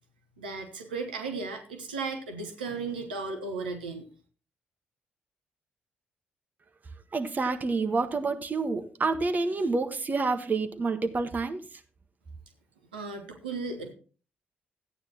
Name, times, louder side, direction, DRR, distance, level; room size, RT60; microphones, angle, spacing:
voice 1, 0.4-4.1 12.9-13.9, right 4 dB, 80° right, 4 dB, 1.0 m, -35 dB
voice 2, 7.1-11.8, right 3 dB, 35° right, 7 dB, 1.4 m, -28 dB
14.5 x 9.3 x 2.9 m, 0.37 s
figure-of-eight pair, 40°, 5 cm